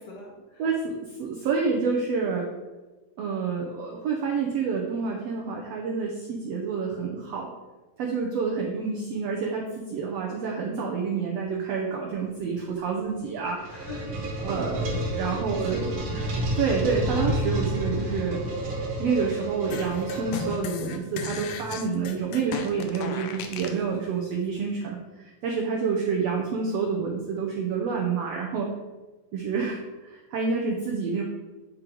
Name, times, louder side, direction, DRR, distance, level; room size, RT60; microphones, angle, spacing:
voice 1, 0.0-0.6 13.7-14.3 14.7-15.0 15.5-16.3, left 1 dB, 70° left, -2 dB, 2.6 m, -41 dB
voice 2, 0.6-2.5 3.2-7.5 8.0-13.7 14.4-15.8 16.6-18.4 19.0-28.7 29.3-31.2, right 5 dB, 85° right, -1 dB, 1.4 m, -28 dB
sound 1, 13.2-21.0, right 1 dB, 50° right, 1.7 m, -30 dB
sound 2, 19.7-23.8, left 6 dB, 85° left, 1.5 m, -35 dB
9.4 x 3.8 x 4.5 m, 1.2 s
omnidirectional pair, 3.9 m